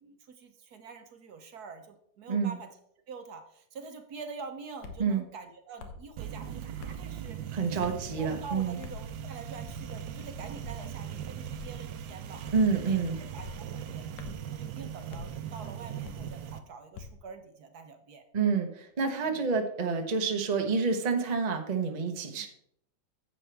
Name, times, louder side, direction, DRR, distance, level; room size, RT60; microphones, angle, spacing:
voice 1, 0.0-2.7 3.1-12.4 12.9-13.0 13.3-18.2 19.2-19.4 22.4-22.5, right 4 dB, 60° right, 7 dB, 1.2 m, -46 dB
sound 1, 4.8-5.1 5.8-6.1 6.8-7.0 7.8-8.1 8.8-9.1 9.7-10.0 10.6-10.8 11.5-11.8 12.4-12.8 13.4-13.6 14.2-14.5 15.1-15.3 16.0-16.3 16.9-17.2, left 5 dB, 70° left, 1.6 m, -45 dB
sound 2, 6.2-16.6, right 8 dB, 80° right, 1.5 m, -40 dB
voice 2, 7.5-8.8 12.5-13.2 18.3-22.5, right 5 dB, 30° right, 4 dB, 0.8 m, -28 dB
10.5 x 7.8 x 3.4 m, 0.70 s
omnidirectional pair, 2.0 m